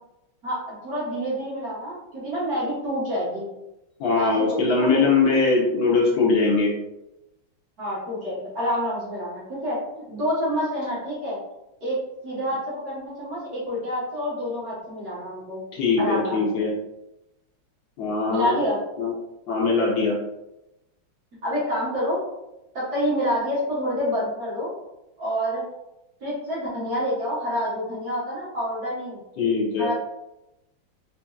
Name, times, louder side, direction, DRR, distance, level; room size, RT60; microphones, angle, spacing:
voice 1, 0.4-3.5 4.1-5.1 7.8-11.4 11.8-12.0 12.2-15.6 16.0-16.7 18.3-18.8 21.4-22.2 22.7-24.7 25.2-25.6 26.2-29.2 29.8-29.9, equal, 50° right, -8 dB, 1.6 m, -28 dB
voice 2, 4.0-6.7 15.7-16.8 18.0-18.6 19.0-19.1 19.5-20.2 29.4-29.9, left 4 dB, 65° left, -4 dB, 1.4 m, -21 dB
4.3 x 2.7 x 2.3 m, 0.91 s
omnidirectional pair, 2.4 m